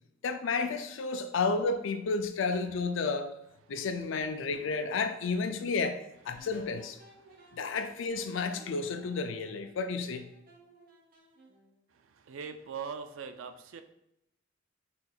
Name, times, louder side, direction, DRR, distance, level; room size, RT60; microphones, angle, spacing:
voice 1, 0.2-3.3 3.7-7.0 7.5-10.3, left 4 dB, 70° left, 8 dB, 0.4 m, -31 dB
sound 1, 2.5-3.3 3.8-5.2 5.8-7.2 7.8-9.2, left 2 dB, 50° left, 0.9 m, -56 dB
sound 2, 4.5-5.6 6.4-11.8, right 3 dB, 50° right, 0.8 m, -59 dB
voice 2, 7.2-7.8 11.9-13.8, right 6 dB, 80° right, 8 dB, 0.4 m, -43 dB
4.2 x 3.8 x 2.3 m, 0.84 s
head